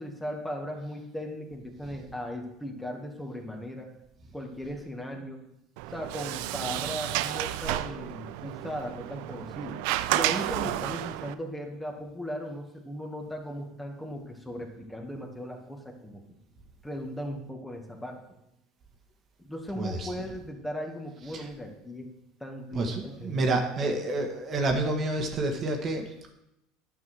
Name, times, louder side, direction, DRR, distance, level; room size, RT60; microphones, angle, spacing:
voice 1, 0.0-3.9 4.3-5.4 5.9-9.8 10.1-16.2 16.8-18.2 19.4-22.1 22.4-23.5 23.8-24.0, equal, 10° left, 2 dB, 2.1 m, -37 dB
Sliding door, 5.8-11.3, right 15 dB, 65° right, 0.5 m, -31 dB
voice 2, 22.8-26.1, right 2 dB, 40° right, 3 dB, 1.8 m, -28 dB
11.0 x 5.8 x 6.5 m, 0.85 s
hypercardioid pair, 75°, 0 cm